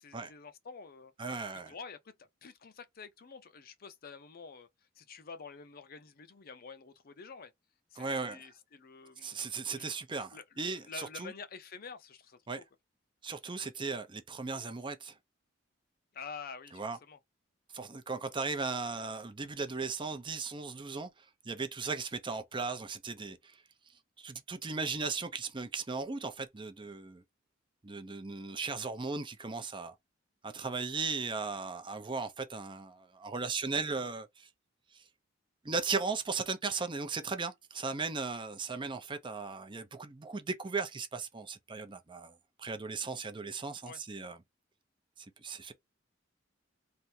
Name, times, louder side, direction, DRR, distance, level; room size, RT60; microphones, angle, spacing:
voice 1, 0.0-1.1 1.7-2.1 2.4-4.7 5.0-7.5 7.9-9.4 9.7-10.0 10.3-12.6 16.1-17.2 43.8-44.0, left 5 dB, 50° left, 0.5 m, -48 dB
voice 2, 1.2-1.7 8.0-8.4 9.2-11.3 12.5-12.6 13.2-15.1 16.7-17.0 17.7-21.1 21.4-23.5 24.2-27.2 27.8-29.9 30.4-34.5 34.9-35.0 35.6-44.4 45.2-45.7, right 4 dB, 25° right, 0.5 m, -37 dB
3.4 x 2.6 x 2.7 m
head